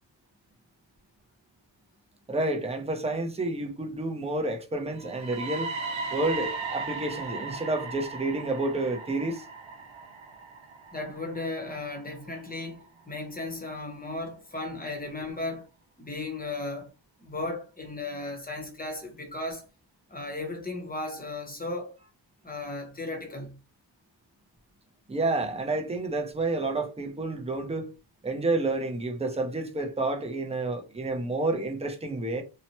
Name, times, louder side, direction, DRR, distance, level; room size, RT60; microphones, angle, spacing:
voice 1, 2.3-5.7 6.1-9.4 25.1-27.9 28.2-32.4, right 2 dB, 15° right, 0.5 m, -29 dB
sound 1, 4.9-12.9, right 4 dB, 85° right, 0.7 m, -37 dB
voice 2, 10.9-15.7 16.0-16.9 17.2-19.6 20.1-22.0 22.4-23.6, left 2 dB, 20° left, 0.8 m, -35 dB
2.8 x 2.1 x 2.9 m
wide cardioid pair, 105°, 46 cm